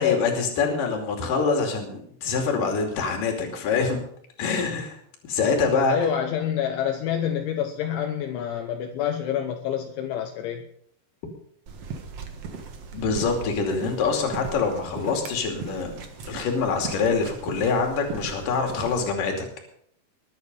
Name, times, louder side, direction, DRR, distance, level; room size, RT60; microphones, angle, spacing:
voice 1, 0.0-4.0 4.4-5.0 5.3-6.0 12.9-15.9 16.3-19.5, left 4 dB, 50° left, 3 dB, 3.9 m, -25 dB
voice 2, 5.9-10.7, left 9 dB, 75° left, 4 dB, 3.3 m, -27 dB
sound 1, 11.7-19.1, right 5 dB, 75° right, 1.4 m, -38 dB
21.0 x 9.0 x 5.4 m, 0.66 s
omnidirectional pair, 5.6 m